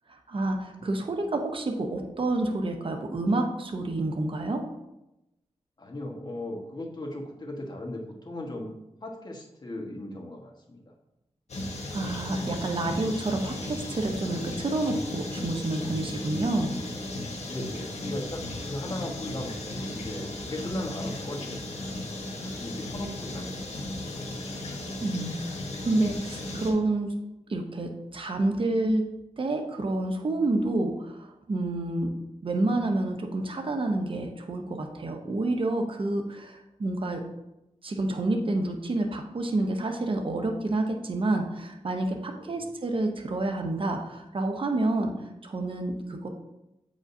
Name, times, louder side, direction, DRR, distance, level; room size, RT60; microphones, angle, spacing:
voice 1, 0.1-4.6 11.9-16.7 25.0-27.1 27.5-29.0 29.4-32.1 32.4-37.2 37.8-46.3, right 2 dB, 50° right, 3 dB, 0.8 m, -29 dB
voice 2, 5.8-8.7 9.0-10.8 17.4-21.8 22.3-24.1 42.4-42.7, left 1 dB, 40° left, 0 dB, 1.3 m, -37 dB
sound 1, 11.5-26.7, left 1 dB, 75° left, 1.3 m, -36 dB
8.1 x 5.0 x 2.7 m, 0.92 s
wide cardioid pair, 70°, 11 cm